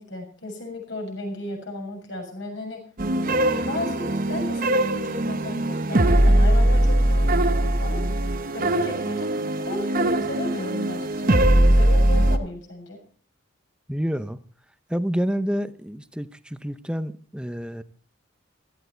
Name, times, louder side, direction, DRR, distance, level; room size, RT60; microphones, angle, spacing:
voice 1, 0.0-2.8 3.4-8.0 8.5-9.3 9.6-13.0, left 1 dB, 65° left, 6.9 m, -34 dB
sound 1, 3.0-12.4, right 1 dB, 45° right, 1.0 m, -21 dB
voice 2, 13.9-14.4 14.9-17.8, equal, 5° right, 0.7 m, -28 dB
16.5 x 14.0 x 4.5 m
head